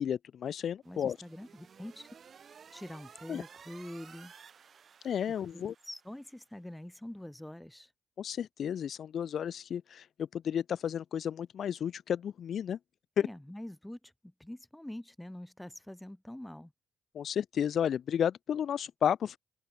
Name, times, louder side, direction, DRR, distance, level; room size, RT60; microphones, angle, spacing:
voice 1, 0.0-1.2 3.3-3.4 5.0-5.7 8.2-12.8 13.2-13.3 17.1-19.4, left 8 dB, 60° left, 0.5 m, -32 dB
voice 2, 0.8-2.1 2.7-4.3 5.3-7.9 13.2-16.7, left 1 dB, 5° left, 4.7 m, -45 dB
sound 1, 0.8-6.4, right 6 dB, 50° right, 1.2 m, -55 dB
open air
cardioid pair, 90°, 0 cm